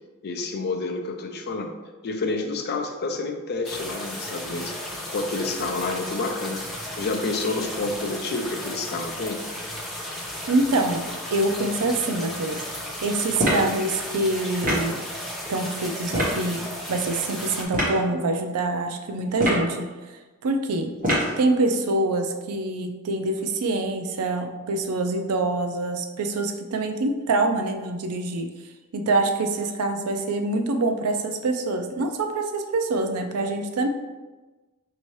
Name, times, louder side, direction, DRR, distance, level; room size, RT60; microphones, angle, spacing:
voice 1, 0.2-1.7 2.0-4.7 5.1-6.6 7.0-9.4, left 3 dB, 45° left, 4 dB, 0.5 m, -29 dB
sound 1, 3.6-17.6, left 1 dB, ahead, 0.8 m, -34 dB
voice 2, 10.5-12.6 13.0-15.0 15.5-19.9 20.4-21.0 21.4-28.5 28.9-33.9, right 2 dB, 75° right, 6 dB, 0.5 m, -25 dB
sound 2, 13.4-13.7 14.6-14.9 16.1-16.4 17.7-18.0 19.3-19.7 21.0-21.4, equal, 40° right, 1.2 m, -23 dB
5.5 x 2.8 x 3.1 m, 1.2 s
head